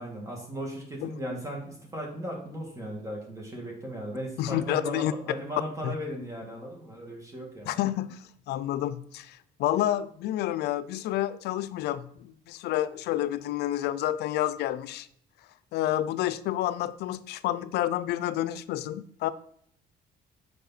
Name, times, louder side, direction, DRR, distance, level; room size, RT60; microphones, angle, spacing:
voice 1, 0.0-7.7, equal, 20° right, -1 dB, 1.9 m, -37 dB
voice 2, 4.4-5.1 5.8-5.9 7.6-15.1 15.7-19.3, left 13 dB, 75° left, 15 dB, 0.5 m, -29 dB
6.7 x 5.0 x 4.1 m, 0.66 s
cardioid pair, 110°, 17 cm